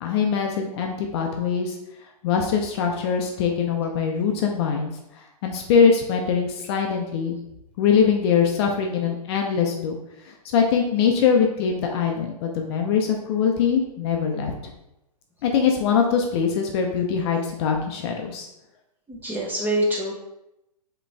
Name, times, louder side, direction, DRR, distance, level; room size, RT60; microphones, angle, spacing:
voice 1, 0.0-1.8 2.2-4.9 5.4-7.3 7.8-10.0 10.5-14.5 15.4-18.5, left 6 dB, 40° left, 2 dB, 0.7 m, -22 dB
voice 2, 19.1-20.2, equal, 10° right, -3 dB, 0.9 m, -25 dB
4.9 x 3.1 x 3.4 m, 0.88 s
hypercardioid pair, 130°, 20 cm